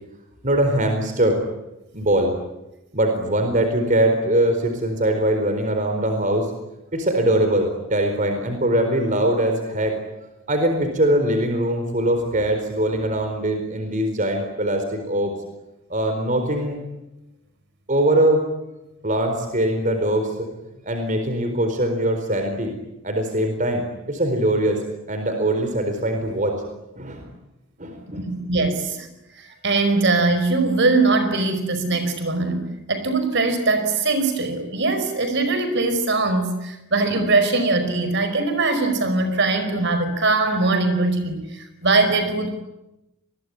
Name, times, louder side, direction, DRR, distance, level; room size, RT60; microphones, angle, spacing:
voice 1, 0.4-1.4 1.9-2.4 2.9-6.5 6.9-10.0 10.5-15.3 15.9-16.8 17.9-18.5 19.0-20.5 20.8-22.7 23.0-24.8 25.1-26.6 27.0-27.3 27.8-28.3, right 1 dB, 35° right, 5 dB, 4.3 m, -22 dB
voice 2, 28.2-29.1 29.4-42.5, right 3 dB, 55° right, 9 dB, 5.0 m, -21 dB
27.5 x 21.5 x 10.0 m, 0.94 s
head